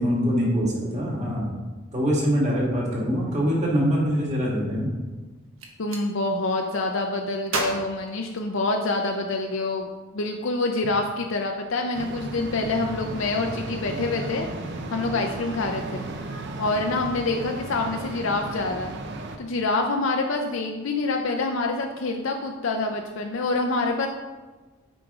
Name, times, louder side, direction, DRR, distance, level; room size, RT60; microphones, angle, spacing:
voice 1, 0.0-1.5 1.9-4.9, equal, 35° right, -3 dB, 2.0 m, -24 dB
Gunshot gunfire, 5.4-6.1 7.5-9.0, right 3 dB, 85° right, 1.1 m, -32 dB
voice 2, 5.8-14.5 14.9-16.1 16.6-19.0 19.4-24.1, left 3 dB, 70° left, 3 dB, 0.6 m, -26 dB
sound 1, 11.9-19.4, right 2 dB, 60° right, 0.7 m, -34 dB
9.0 x 5.1 x 3.6 m, 1.2 s
head